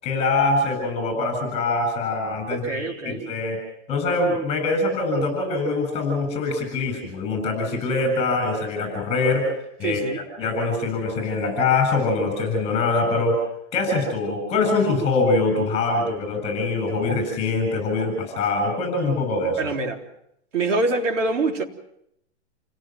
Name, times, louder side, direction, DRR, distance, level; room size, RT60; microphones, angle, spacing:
voice 1, 0.0-3.6 3.9-9.4 9.8-10.0 10.4-13.4 13.7-19.7, left 3 dB, 15° left, 7.4 m, -23 dB
voice 2, 2.5-3.2 9.8-10.3 19.6-20.0 20.5-21.6, right 3 dB, 90° right, 3.7 m, -25 dB
29.0 x 17.5 x 6.1 m
hypercardioid pair, 170°, 36 cm